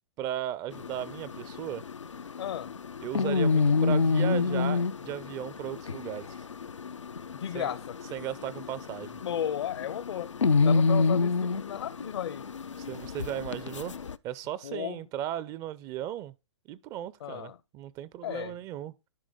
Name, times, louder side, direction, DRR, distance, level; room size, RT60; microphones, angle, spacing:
voice 1, 0.2-1.8 3.0-6.4 7.5-7.7 8.1-9.2 12.9-13.9 14.2-16.3 16.7-18.9, right 12 dB, 25° right, 0.4 m, -36 dB
sound 1, 0.7-14.2, left 4 dB, 90° left, 0.4 m, -29 dB
voice 2, 2.4-2.8 7.3-8.0 9.2-12.5 14.6-15.0 17.2-17.6 18.2-18.6, left 10 dB, 60° left, 0.7 m, -34 dB
11.5 x 5.0 x 3.8 m
figure-of-eight pair, 120°, 15 cm